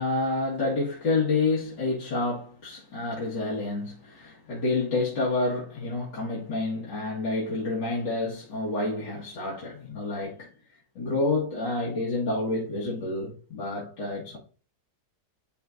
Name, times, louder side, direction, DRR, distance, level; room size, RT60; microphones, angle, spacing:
voice 1, 0.0-10.5 11.0-14.4, left 2 dB, 70° left, 2.4 m, -29 dB
10.0 x 4.4 x 2.6 m
omnidirectional pair, 2.0 m